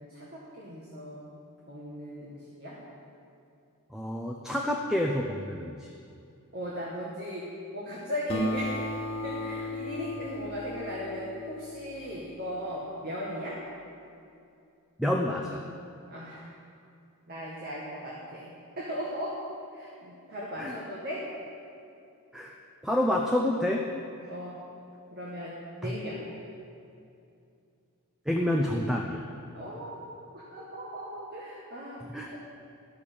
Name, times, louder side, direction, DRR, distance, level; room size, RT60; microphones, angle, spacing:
voice 1, 0.0-1.3 1.7-2.8 6.5-7.5 7.7-8.8 9.2-13.6 16.1-16.5 17.3-19.3 19.7-21.2 24.3-24.6 25.1-26.2 29.5-32.0 32.3-32.4, equal, 45° right, -5 dB, 1.9 m, -37 dB
voice 2, 3.9-5.9 15.0-15.6 20.6-20.8 22.3-22.5 22.8-23.9 25.8-25.9 28.3-29.2 32.1-32.3, left 1 dB, ahead, 0 dB, 0.6 m, -28 dB
Acoustic guitar, 8.3-13.1, left 1 dB, 25° left, 0.9 m, -36 dB
12.5 x 6.9 x 8.6 m, 2.6 s
head